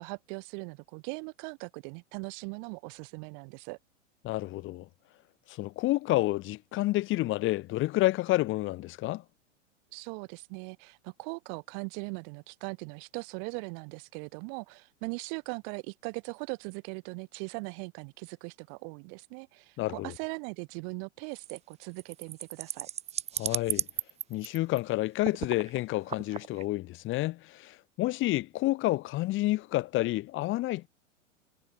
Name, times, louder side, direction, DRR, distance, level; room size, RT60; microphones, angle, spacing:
voice 1, 0.0-3.8 9.9-22.9, right 40 dB or more, 40° right, 3.4 m, -40 dB
voice 2, 4.2-4.9 5.5-9.2 19.8-20.1 23.4-23.9 24.3-30.9, left 18 dB, 30° left, 2.9 m, -29 dB
sound 1, 21.4-24.8 25.2-25.8 26.1-26.6, right 9 dB, 15° right, 1.2 m, -35 dB
figure-of-eight pair, 100°, 38 cm